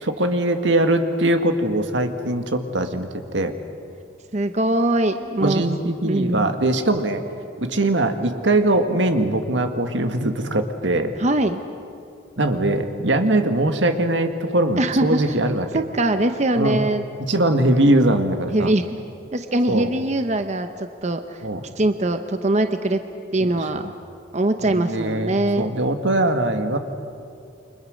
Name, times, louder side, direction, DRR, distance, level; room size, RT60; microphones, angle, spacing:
voice 1, 0.0-3.5 5.4-7.2 7.6-11.1 12.4-15.7 16.6-16.9 17.3-18.7 19.7-19.9 21.4-21.6 23.4-23.9 24.6-26.8, right 1 dB, 80° right, 7 dB, 1.8 m, -21 dB
voice 2, 4.3-5.6 6.0-6.5 11.2-11.6 14.8-17.0 18.5-19.0 19.3-21.4 21.8-23.0 23.3-23.9 24.3-25.7, right 1 dB, 40° right, 8 dB, 0.9 m, -22 dB
29.0 x 25.0 x 6.4 m, 2.5 s
head